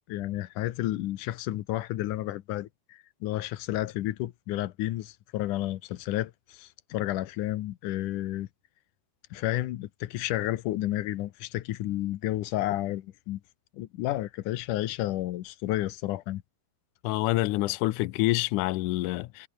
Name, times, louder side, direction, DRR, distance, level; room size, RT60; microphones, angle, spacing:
voice 1, 0.1-8.5 9.3-13.4 13.7-16.4, left 15 dB, 70° left, 2.2 m, -31 dB
voice 2, 17.0-19.5, left 18 dB, 90° left, 1.7 m, -27 dB
omnidirectional pair, 4.5 m